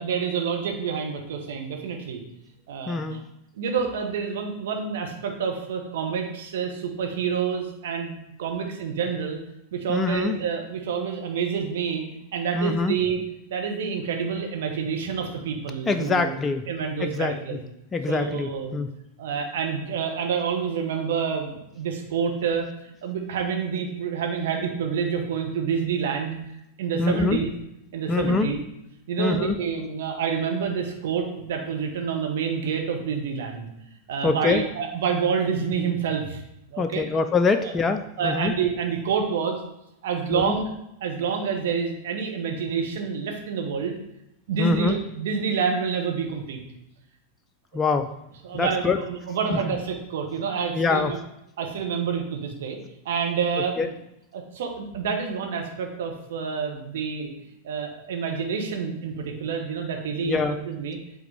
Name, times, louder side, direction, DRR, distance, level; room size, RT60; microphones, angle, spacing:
voice 1, 0.0-2.2 2.7-3.2 3.5-8.1 8.4-9.4 9.7-12.0 12.3-13.2 13.5-16.3 16.7-17.6 18.1-18.8 19.2-26.4 26.8-27.5 27.9-28.6 29.1-33.7 34.1-36.4 36.7-37.0 37.6-37.7 38.2-39.6 40.0-40.7 41.0-44.0 44.5-46.6 48.4-51.2 51.6-52.8 53.0-53.9 54.3-57.3 57.6-60.4 60.7-61.0, right 6 dB, 55° right, 2 dB, 1.1 m, -28 dB
voice 2, 2.9-3.2 9.9-10.4 12.5-13.0 15.9-16.7 17.0-17.6 17.9-18.9 27.0-27.4 28.1-28.5 29.2-29.6 34.2-34.6 36.8-38.5 40.3-40.6 44.6-45.0 47.7-48.1 48.5-49.0 49.5-49.6 50.7-51.1 53.6-53.9 60.2-60.6, left 4 dB, 20° left, 8 dB, 0.4 m, -24 dB
8.0 x 3.8 x 3.5 m, 0.83 s
figure-of-eight pair, 90°, 0 cm